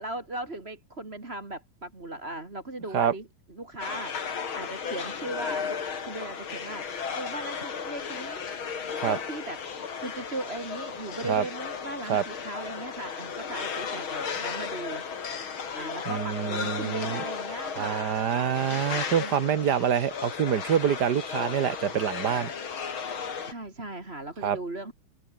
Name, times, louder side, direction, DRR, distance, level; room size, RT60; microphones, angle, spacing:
voice 1, 0.0-8.5 9.0-9.6 10.0-15.1 15.7-18.8 19.2-19.3 23.4-24.9, right 2 dB, 30° right, 3.4 m, -38 dB
sound 1, 3.8-23.5, left 6 dB, 85° left, 3.3 m, -35 dB
voice 2, 16.1-17.2 17.8-22.5 24.4-24.6, right 8 dB, 60° right, 1.6 m, -26 dB
omnidirectional pair, 2.2 m